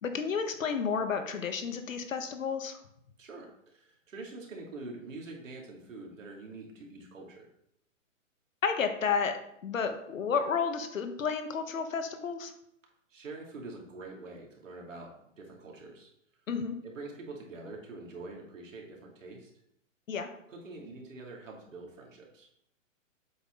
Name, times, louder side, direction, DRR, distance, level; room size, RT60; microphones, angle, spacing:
voice 1, 0.0-2.8 8.6-9.4 9.6-12.5 16.5-16.8 20.1-20.3, left 6 dB, 80° left, 7 dB, 1.3 m, -31 dB
voice 2, 3.2-7.5 13.1-15.1 15.4-16.1 16.8-19.5 20.5-22.5, right 3 dB, 70° right, -1 dB, 2.7 m, -45 dB
7.8 x 5.8 x 3.8 m, 0.75 s
hypercardioid pair, 175°, 39 cm